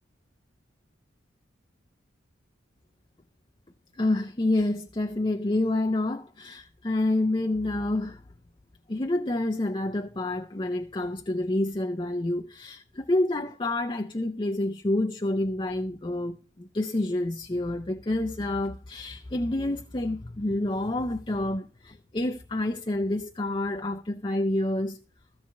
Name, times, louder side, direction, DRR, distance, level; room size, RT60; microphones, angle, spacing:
voice 1, 4.0-8.2 8.9-25.0, left 1 dB, 25° left, 0.5 m, -28 dB
14.0 x 4.7 x 8.2 m
head